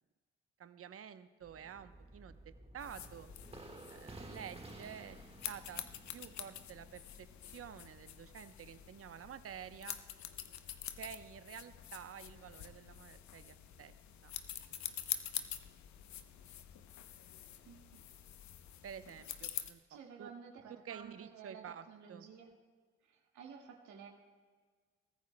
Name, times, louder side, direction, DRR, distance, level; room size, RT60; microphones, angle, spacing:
voice 1, 0.6-2.4 2.7-3.3 3.9-5.2 5.5-5.8 6.1-10.0 11.0-13.9 14.2-14.3 14.7-15.3 18.8-19.8 20.2-20.3 20.7-22.3, right 8 dB, 50° right, 12 dB, 0.8 m, -50 dB
sound 1, 1.4-10.7 11.0-11.1 11.4-11.6, right 2 dB, 20° right, 1.5 m, -55 dB
sound 2, 2.8-19.7, left 11 dB, 65° left, 0.8 m, -47 dB
voice 2, 17.6-18.0 19.9-22.5 23.1-24.1, right 6 dB, 70° right, 1 dB, 1.9 m, -53 dB
22.5 x 14.5 x 2.2 m, 1.5 s
hypercardioid pair, 50°, 30 cm